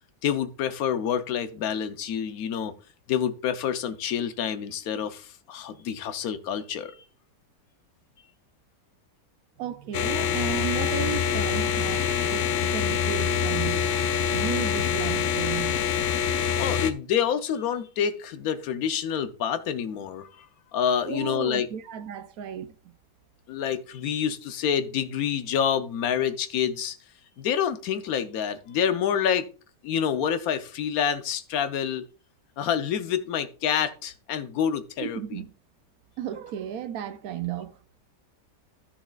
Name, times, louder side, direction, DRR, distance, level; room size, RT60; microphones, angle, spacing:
voice 1, 0.2-2.7 3.1-7.0 16.6-20.5 20.7-21.7 23.5-27.0 27.4-29.5 29.8-32.1 32.6-35.4, left 8 dB, 65° left, 1.1 m, -27 dB
voice 2, 9.6-13.9 14.3-15.9 21.1-23.0 35.0-35.5 36.2-37.8, right 9 dB, 65° right, 1.0 m, -34 dB
sound 1, 9.9-16.9, left 7 dB, 85° left, 0.6 m, -25 dB
12.5 x 7.2 x 2.4 m
omnidirectional pair, 1.9 m